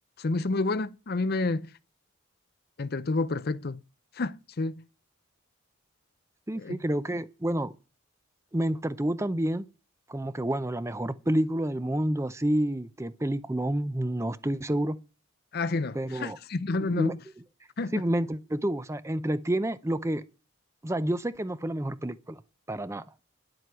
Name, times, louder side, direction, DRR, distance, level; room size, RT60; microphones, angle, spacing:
voice 1, 0.2-1.7 2.8-3.8 4.1-4.8 6.6-6.8 15.5-17.1 17.8-18.0, left 3 dB, 45° left, 0.5 m, -29 dB
voice 2, 6.5-7.8 8.5-9.7 10.1-15.0 15.9-16.4 16.9-17.1 17.9-20.2 20.8-22.4 22.7-23.0, right 1 dB, 15° right, 0.5 m, -29 dB
11.0 x 7.8 x 6.9 m
head